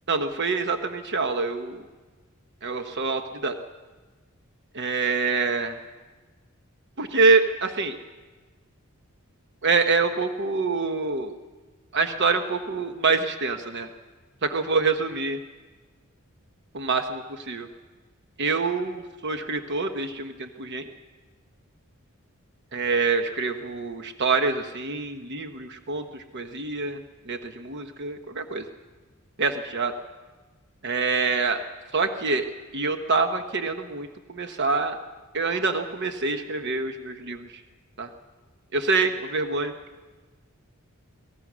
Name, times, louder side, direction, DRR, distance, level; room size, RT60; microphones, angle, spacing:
voice 1, 0.1-1.9 2.6-3.6 4.7-5.7 7.0-8.0 9.6-11.3 11.9-13.9 14.4-15.4 16.7-17.7 18.4-20.8 22.7-27.0 27.3-28.6 29.4-29.9 30.8-31.6 31.9-32.5 32.7-35.0 35.3-37.5 38.0-38.1 38.7-39.7, right 4 dB, 55° right, 7 dB, 1.1 m, -26 dB
24.5 x 18.0 x 6.2 m, 1.3 s
head